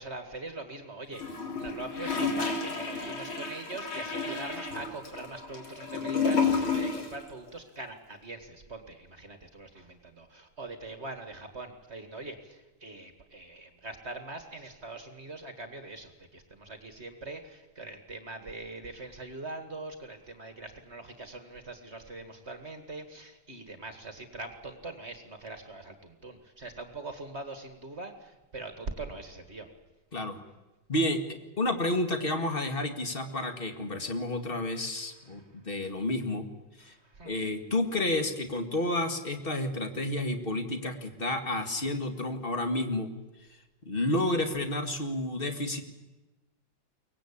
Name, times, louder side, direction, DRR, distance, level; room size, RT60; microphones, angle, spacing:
voice 1, 0.0-29.7 35.4-35.5 36.8-37.4, right 2 dB, 35° right, 7 dB, 2.0 m, -42 dB
Gurgling / Toilet flush, 1.1-7.2 7.5-7.6, left 5 dB, 90° left, 4.3 m, -31 dB
voice 2, 30.9-31.2 31.6-36.5 36.8-36.9 37.2-43.1 43.8-45.8, left 1 dB, 30° left, 6 dB, 2.0 m, -30 dB
23.5 x 19.0 x 8.7 m, 1.1 s
omnidirectional pair, 2.2 m